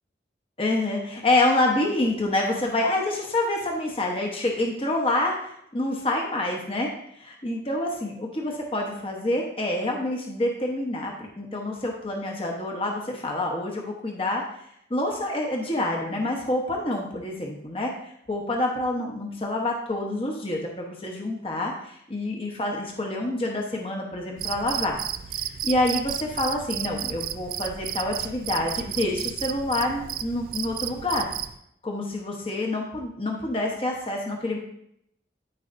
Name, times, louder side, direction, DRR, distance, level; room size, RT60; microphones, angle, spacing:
voice 1, 0.6-14.4 14.9-25.0 25.3-31.3 31.8-34.6, left 1 dB, 30° left, 0 dB, 1.0 m, -27 dB
Cricket, 24.4-31.6, right 10 dB, 50° right, 0.3 m, -33 dB
13.0 x 4.9 x 2.6 m, 0.74 s
head